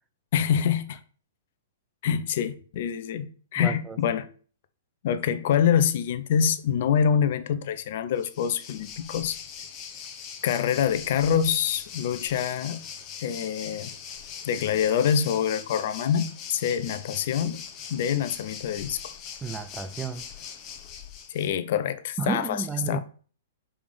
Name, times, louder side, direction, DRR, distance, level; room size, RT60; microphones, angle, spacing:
voice 1, 0.3-1.0 2.0-4.3 5.0-9.4 10.4-12.8 13.2-13.9 14.5-17.6 17.9-19.1 21.3-23.0, left 8 dB, 50° left, 0.8 m, -25 dB
voice 2, 3.6-4.0 19.4-20.2 22.2-23.0, right 5 dB, 15° right, 0.6 m, -32 dB
Waves surf, 8.2-21.5, left 7 dB, 30° left, 1.2 m, -41 dB
5.1 x 4.9 x 5.2 m
figure-of-eight pair, 110°, 0 cm